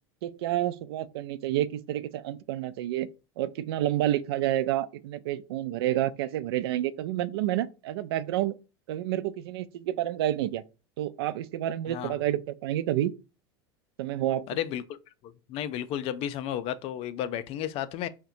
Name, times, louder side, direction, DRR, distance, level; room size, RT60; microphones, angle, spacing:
voice 1, 0.2-3.1 3.4-8.5 8.9-10.6 11.0-13.1 14.0-14.5, right 13 dB, 75° right, 0.4 m, -29 dB
voice 2, 11.9-12.2 14.5-15.0 15.2-18.1, left 11 dB, 50° left, 0.4 m, -33 dB
5.5 x 2.2 x 2.6 m
hypercardioid pair, 95°, 13 cm